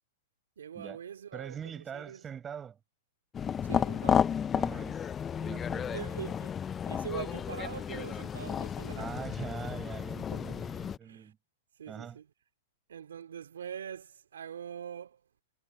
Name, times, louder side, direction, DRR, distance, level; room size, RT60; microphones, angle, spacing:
voice 1, 0.6-1.6 1.9-2.2 3.6-4.3 5.9-6.5 6.8-9.1 10.3-10.6 11.0-11.3 11.8-12.3 12.9-15.2, right 8 dB, 80° right, 2.6 m, -43 dB
voice 2, 1.3-2.8 4.5-5.1 5.4-6.3 8.9-11.4 11.9-12.2, right 8 dB, 20° right, 6.5 m, -43 dB
sound 1, 3.3-11.0, left 8 dB, 20° left, 0.5 m, -32 dB
hypercardioid pair, 115°, 0 cm